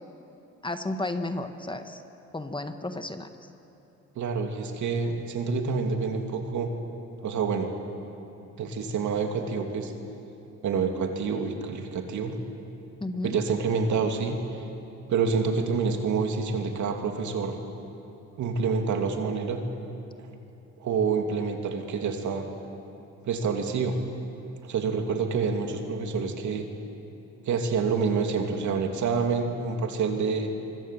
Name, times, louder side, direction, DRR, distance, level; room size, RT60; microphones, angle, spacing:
voice 1, 0.6-2.0 2.3-3.3 13.0-13.4, left 2 dB, 15° left, 8 dB, 1.5 m, -32 dB
voice 2, 4.2-6.7 7.2-7.7 8.6-9.9 10.6-12.3 13.2-14.4 15.1-17.6 18.4-19.6 20.8-22.4 23.3-24.0 24.6-26.6 27.4-30.5, right 5 dB, 70° right, 4 dB, 2.7 m, -27 dB
24.0 x 24.0 x 7.7 m, 2.9 s
cardioid pair, 90°, 30 cm